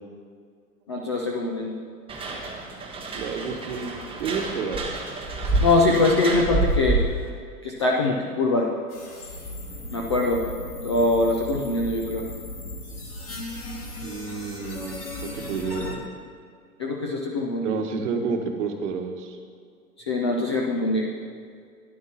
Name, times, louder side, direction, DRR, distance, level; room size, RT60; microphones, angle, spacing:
voice 1, 0.9-1.7 5.6-7.0 7.6-8.7 9.9-10.4 10.8-12.2 16.8-17.8 20.1-21.1, left 2 dB, 20° left, -1 dB, 0.3 m, -23 dB
sound 1, 2.1-7.3, right 2 dB, 10° right, 1.1 m, -28 dB
voice 2, 3.1-3.9 4.2-4.9 14.0-16.2 17.6-19.4, right 5 dB, 50° right, 5 dB, 1.2 m, -30 dB
sound 2, 8.9-16.0, left 1 dB, 70° left, 2.5 m, -36 dB
13.0 x 10.5 x 2.8 m, 2.2 s
figure-of-eight pair, 105°, 46 cm